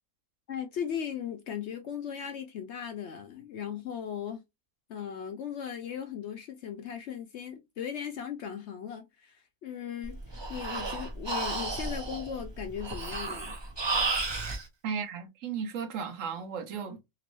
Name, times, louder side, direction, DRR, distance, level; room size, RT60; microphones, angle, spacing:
voice 1, 0.5-4.4 4.9-10.2 10.5-13.5, left 8 dB, 65° left, 0.7 m, -37 dB
Breathing, 10.0-14.6, right 3 dB, 35° right, 0.4 m, -33 dB
voice 2, 14.8-17.0, right 6 dB, 65° right, 1.0 m, -35 dB
3.0 x 3.0 x 2.9 m
omnidirectional pair, 1.5 m